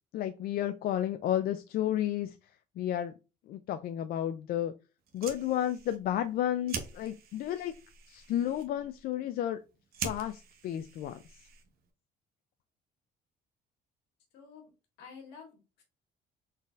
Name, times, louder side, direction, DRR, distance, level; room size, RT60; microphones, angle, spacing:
voice 1, 0.1-2.4 2.8-3.1 3.5-4.7 5.1-7.7 8.1-9.6 10.0-11.4, left 11 dB, 65° left, 9 dB, 0.4 m, -32 dB
Fire, 5.0-11.9, right 6 dB, 65° right, 0.8 m, -44 dB
voice 2, 14.3-14.7 15.0-15.8, left 6 dB, 80° left, 1 dB, 1.8 m, -50 dB
4.0 x 3.9 x 2.4 m, 0.29 s
cardioid pair, 110°, 17 cm